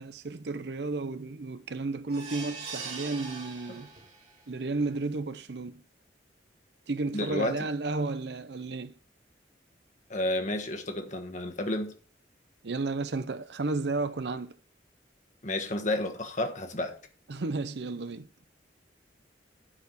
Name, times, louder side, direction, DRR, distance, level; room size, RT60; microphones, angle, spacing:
voice 1, 0.0-3.9 4.5-5.8 6.9-8.9 12.6-14.6 17.3-18.3, right 3 dB, 70° right, 0.7 m, -33 dB
sound 1, 2.1-4.4 4.8-4.9 5.3-5.4, right 4 dB, 35° right, 2.7 m, -41 dB
voice 2, 7.1-7.7 10.1-11.9 15.4-17.0, left 1 dB, 45° left, 1.4 m, -31 dB
10.0 x 4.8 x 6.1 m
head